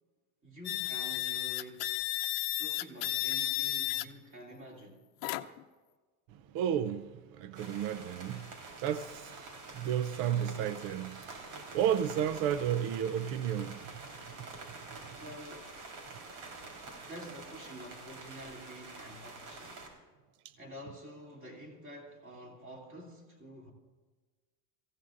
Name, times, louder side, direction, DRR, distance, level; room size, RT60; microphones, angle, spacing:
voice 1, 0.4-1.9 2.6-5.0 15.0-15.8 17.0-19.8 20.6-23.7, equal, 25° right, 2.7 m, -48 dB
sound 1, 0.7-4.1 5.2-5.6, left 22 dB, 80° left, 0.9 m, -33 dB
voice 2, 6.3-8.5 8.8-14.5, right 9 dB, 50° right, 0.6 m, -33 dB
sound 2, 7.5-19.9, right 3 dB, 75° right, 4.1 m, -47 dB
25.0 x 15.5 x 2.5 m
cardioid pair, 155°, 47 cm